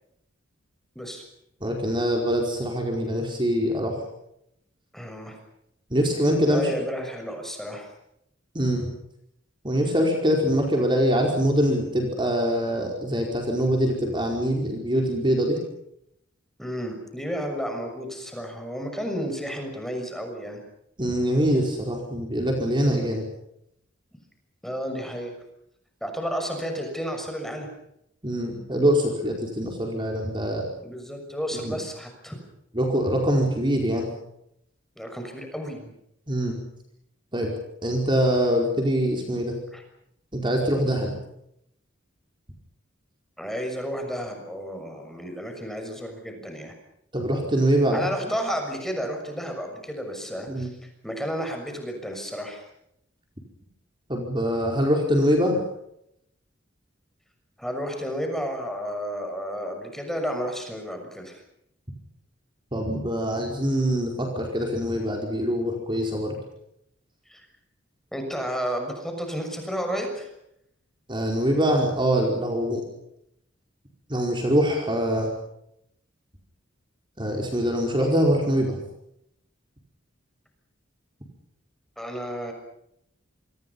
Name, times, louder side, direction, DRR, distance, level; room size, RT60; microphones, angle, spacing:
voice 1, 1.6-4.0 5.9-6.7 8.5-8.9 9.6-15.6 21.0-23.3 28.2-30.7 31.5-31.8 32.7-34.1 36.3-36.5 37.3-37.5 37.8-39.6 40.3-41.2 47.1-48.1 50.5-50.7 54.1-55.6 62.7-66.4 71.1-72.8 74.1-75.3 77.2-78.8, equal, 25° right, 1 dB, 4.9 m, -24 dB
voice 2, 4.9-5.4 6.5-7.9 16.6-20.6 24.6-25.3 26.0-27.7 30.8-32.4 35.0-35.9 39.7-39.8 43.4-46.8 47.9-50.8 51.0-52.6 57.6-61.4 67.3-67.5 68.1-70.3 82.0-82.5, equal, ahead, 4 dB, 6.4 m, -32 dB
28.5 x 25.0 x 5.7 m, 0.77 s
head